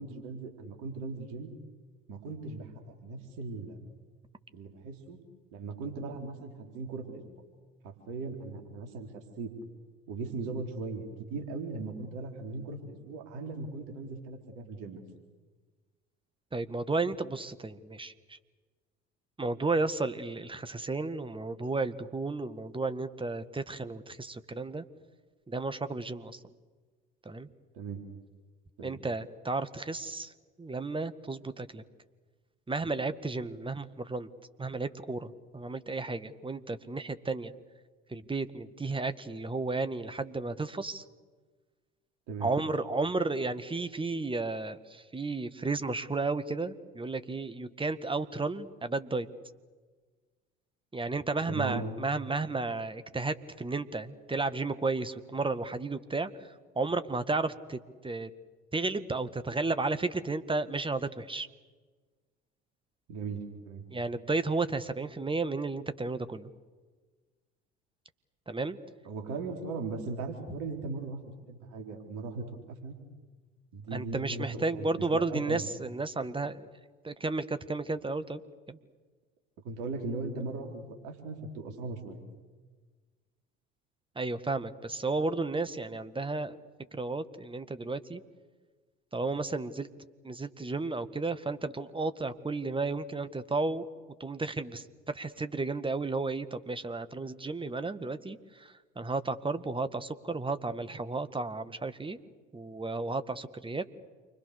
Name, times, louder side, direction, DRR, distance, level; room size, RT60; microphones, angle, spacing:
voice 1, 0.0-1.5 2.1-2.7 3.0-3.8 4.5-5.2 5.5-7.4 7.8-9.5 10.1-15.0 27.7-28.0 28.8-29.0 42.3-42.5 51.5-51.9 63.1-63.8 69.0-73.0 73.7-75.7 79.6-82.2, right 3 dB, 60° right, 3 dB, 4.0 m, -38 dB
voice 2, 16.5-18.4 19.4-24.8 25.5-26.4 27.3-27.5 28.8-30.3 30.6-31.8 32.7-34.3 34.6-37.5 38.1-41.0 42.4-49.3 50.9-56.3 56.8-58.3 58.7-61.5 63.9-66.5 68.5-68.8 73.9-76.7 77.0-78.4 78.7-78.8 84.2-86.6 86.9-88.2 89.1-89.9 90.2-93.9 94.2-102.2 102.5-104.0, right 3 dB, 15° right, 11 dB, 1.8 m, -33 dB
29.0 x 24.0 x 6.8 m, 1.4 s
figure-of-eight pair, 60°, 34 cm